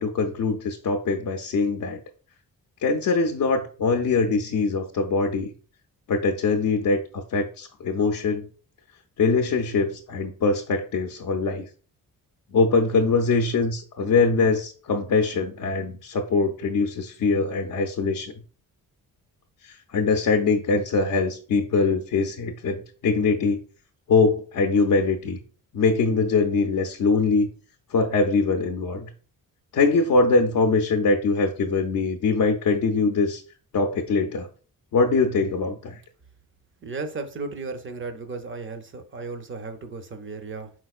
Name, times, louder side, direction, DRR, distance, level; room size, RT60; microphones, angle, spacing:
voice 1, 0.0-2.0 2.8-5.5 6.1-8.5 9.2-11.7 12.5-18.3 19.6-23.6 24.1-25.4 25.7-27.5 27.9-29.1 29.7-33.4 33.7-34.5 34.9-36.0, left 4 dB, 55° left, 0.5 m, -22 dB
voice 2, 36.8-40.7, right 4 dB, 35° right, 0.5 m, -35 dB
4.5 x 4.1 x 2.3 m
wide cardioid pair, 145°, 36 cm